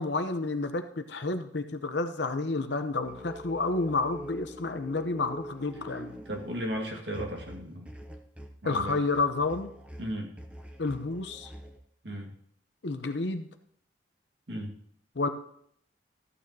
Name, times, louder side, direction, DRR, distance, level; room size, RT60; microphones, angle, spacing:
voice 1, 0.0-6.1 8.6-9.7 10.8-11.5 12.8-13.5 15.2-15.3, left 3 dB, 65° left, 8 dB, 0.8 m, -30 dB
sound 1, 3.0-11.8, equal, 5° right, 0.7 m, -45 dB
voice 2, 6.3-7.9 8.6-9.0 10.0-10.3 12.0-12.3 14.5-14.7, equal, 65° right, 1 dB, 1.8 m, -35 dB
14.0 x 9.0 x 2.8 m, 0.66 s
head